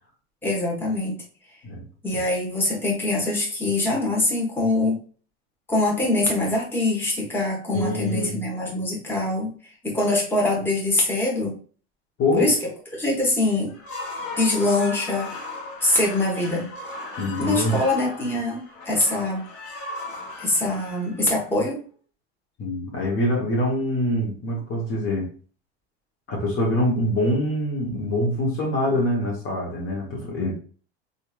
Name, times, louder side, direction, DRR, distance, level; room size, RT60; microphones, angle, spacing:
voice 1, 0.4-1.1 2.0-5.0 5.7-9.5 9.8-11.6 12.3-12.6 13.0-13.7 14.4-15.3 15.8-16.7 17.4-18.6 18.8-19.4 20.4-21.8, left 2 dB, 5° left, -3 dB, 1.1 m, -23 dB
voice 2, 7.7-8.4 12.2-12.5 17.2-17.8 22.6-25.3 26.3-30.5, left 1 dB, 40° left, -2 dB, 1.0 m, -24 dB
sound 1, 13.7-21.8, left 2 dB, 75° left, 1.1 m, -37 dB
2.9 x 2.6 x 2.3 m, 0.41 s
hypercardioid pair, 95°, 33 cm